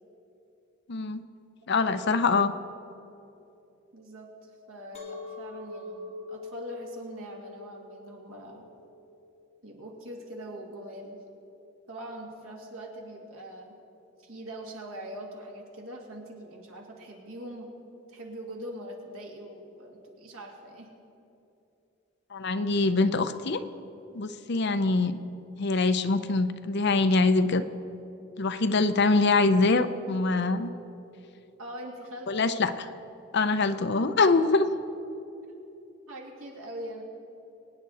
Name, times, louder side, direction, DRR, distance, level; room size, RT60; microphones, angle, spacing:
voice 1, 0.9-1.2 1.7-2.5 22.3-23.6 24.1-25.2 25.6-27.6 28.4-30.7 32.3-32.7 33.3-34.7, left 3 dB, 55° left, 10 dB, 0.6 m, -24 dB
voice 2, 1.7-2.2 3.9-8.7 9.6-11.2 11.9-13.7 14.2-17.7 18.1-20.9 31.6-32.6 36.1-37.0, equal, 85° right, -1 dB, 2.5 m, -42 dB
Chink clink, 4.9-10.1, left 3 dB, 30° left, 1.6 m, -44 dB
23.5 x 9.4 x 4.2 m, 2.9 s
head